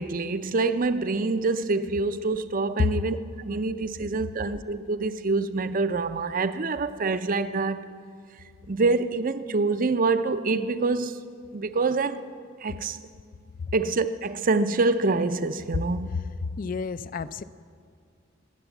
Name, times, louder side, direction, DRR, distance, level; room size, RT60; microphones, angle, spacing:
voice 1, 0.0-3.2 3.5-7.8 8.7-11.2 11.5-12.2 12.6-13.0 13.7-16.1, right 3 dB, 45° right, 0.6 m, -26 dB
voice 2, 16.1-17.4, left 5 dB, 45° left, 0.4 m, -29 dB
20.0 x 8.0 x 8.1 m
head